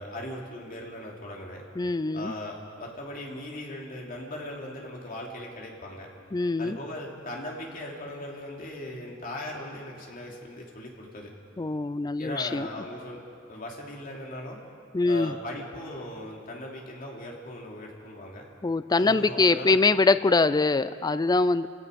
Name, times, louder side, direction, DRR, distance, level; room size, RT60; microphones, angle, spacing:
voice 1, 0.0-1.6 2.1-6.1 6.6-11.3 12.2-13.2 13.5-14.6 15.0-18.5 18.9-19.8, left 1 dB, 45° left, -1 dB, 3.1 m, -38 dB
voice 2, 1.8-2.3 6.3-6.8 11.6-12.7 14.9-15.3 18.6-21.7, left 3 dB, 20° left, 14 dB, 0.4 m, -23 dB
29.0 x 17.0 x 5.3 m, 2.4 s
head